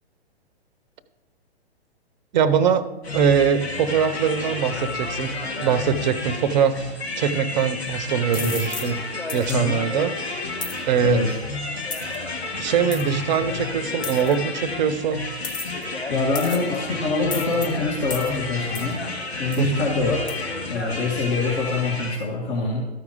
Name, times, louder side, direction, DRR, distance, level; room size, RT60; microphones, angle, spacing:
voice 1, 2.3-2.9 3.1-6.8 7.2-9.0 9.3-10.1 10.9-11.2 12.6-15.2 19.6-19.9, right 8 dB, 45° right, 13 dB, 0.8 m, -22 dB
sound 1, 3.0-22.2, left 3 dB, 85° left, 1.5 m, -31 dB
sound 2, 8.3-8.9 9.3-9.5 10.6-10.8 11.9-12.2 12.9-13.0 14.0-14.3 15.4-15.8 16.4-16.8 17.3-17.7 18.1-18.3 18.8-18.9 19.5-19.7 20.3-20.4, left 5 dB, 15° left, 0.6 m, -33 dB
voice 2, 9.5-9.8 11.0-11.4 16.1-19.1 19.4-20.3 20.7-22.8, left 3 dB, 35° left, -3 dB, 2.0 m, -25 dB
13.0 x 4.9 x 5.0 m, 1.0 s
figure-of-eight pair, 120°, 32 cm